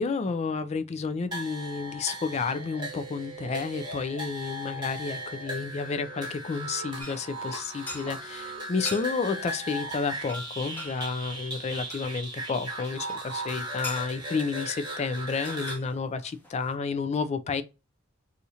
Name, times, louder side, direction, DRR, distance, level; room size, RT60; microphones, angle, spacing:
voice 1, 0.0-17.6, left 4 dB, 35° left, 0.3 m, -31 dB
sound 1, 1.3-15.8, right 1 dB, 20° right, 1.0 m, -37 dB
sound 2, 7.0-8.3 8.7-9.1 9.5-9.7 10.0-10.1 10.3-12.1 13.1-14.5 15.1-15.2 15.4-16.7, left 1 dB, 10° left, 0.8 m, -42 dB
2.7 x 2.4 x 4.1 m
head